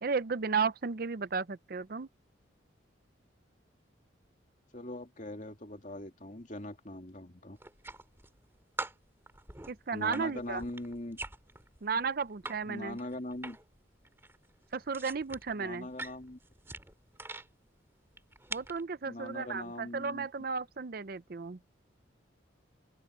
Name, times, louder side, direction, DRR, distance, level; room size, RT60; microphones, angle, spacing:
voice 1, 0.0-2.1 9.7-10.6 11.8-13.0 14.7-15.9 18.5-21.6, right 5 dB, 50° right, 0.6 m, -34 dB
voice 2, 4.7-7.6 9.9-11.2 12.7-13.6 15.6-16.4 19.0-20.3, left 1 dB, 40° left, 2.6 m, -41 dB
sound 1, 7.6-8.5 8.8-12.6 12.9-13.8 14.0-17.5 18.1-18.8, right 2 dB, 15° right, 2.3 m, -44 dB
open air
head